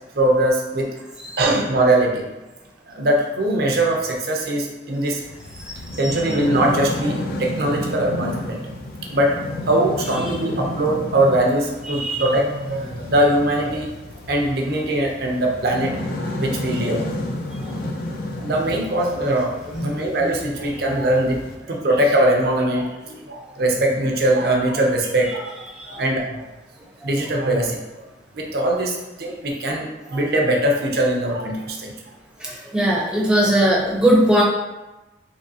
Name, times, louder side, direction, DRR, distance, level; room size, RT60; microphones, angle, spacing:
voice 1, 0.2-0.9 1.4-2.2 2.9-5.2 6.0-8.6 9.1-9.4 9.7-13.9 14.3-17.1 18.4-19.5 19.8-23.0 23.3-25.5 25.9-26.4 27.0-27.8 28.3-31.9, right 1 dB, 60° right, 0 dB, 0.6 m, -21 dB
sound 1, 5.2-21.6, left 1 dB, 55° left, 0.4 m, -31 dB
voice 2, 11.9-12.2 19.7-19.9 27.0-27.1 32.4-34.4, right 1 dB, 5° right, -4 dB, 0.6 m, -19 dB
3.6 x 3.1 x 2.7 m, 1.0 s
head